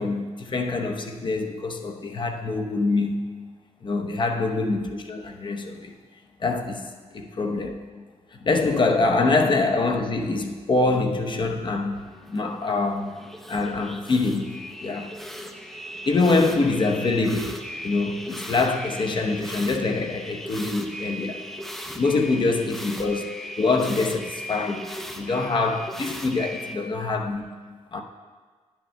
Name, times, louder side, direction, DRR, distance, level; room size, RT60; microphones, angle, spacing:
voice 1, 0.0-3.2 3.8-5.9 6.4-8.0 8.3-12.0 12.3-13.1 13.5-14.5 14.8-15.1 16.0-17.6 17.8-21.4 21.9-23.3 23.6-24.8 25.1-27.5 27.9-28.0, left 3 dB, 45° left, 0.9 m, -25 dB
sound 1, 11.9-26.8, equal, ahead, 0.6 m, -38 dB
10.0 x 10.0 x 2.2 m
cardioid pair, 85°, 12 cm